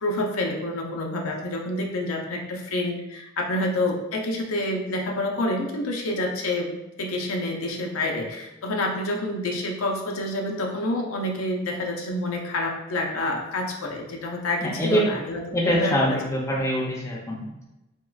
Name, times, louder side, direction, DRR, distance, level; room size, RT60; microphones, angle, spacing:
voice 1, 0.0-16.2, left 1 dB, 90° left, 1 dB, 0.5 m, -28 dB
voice 2, 14.6-15.0 15.5-17.7, equal, 15° left, -3 dB, 0.4 m, -24 dB
3.5 x 2.3 x 2.3 m, 0.97 s
head